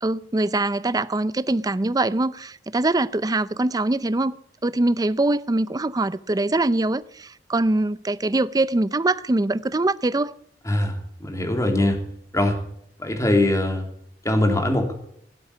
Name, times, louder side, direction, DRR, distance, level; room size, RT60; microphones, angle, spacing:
voice 1, 0.0-4.4 4.6-10.3, right 2 dB, 20° right, 0.5 m, -23 dB
voice 2, 10.6-11.0 11.2-12.0 12.3-12.6 13.0-13.8 14.2-14.9, left 1 dB, 15° left, 3.1 m, -21 dB
17.0 x 8.6 x 8.5 m
head